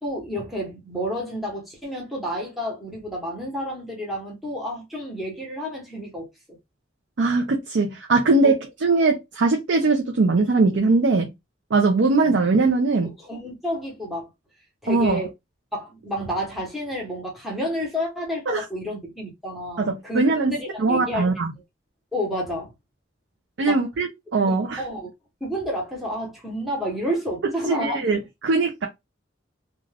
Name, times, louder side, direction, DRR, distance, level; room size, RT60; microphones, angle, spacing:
voice 1, 0.0-6.6 8.4-8.5 13.2-14.3 14.8-15.3 15.7-21.3 22.1-22.7 23.7-23.8 24.4-25.1 25.4-28.1, equal, ahead, 0.9 m, -30 dB
voice 2, 7.2-8.6 8.8-11.3 11.7-13.2 14.9-15.2 18.5-18.6 19.8-20.5 20.8-21.5 23.6-24.8 27.6-28.9, right 3 dB, 65° right, 0.5 m, -21 dB
2.4 x 2.3 x 3.2 m
head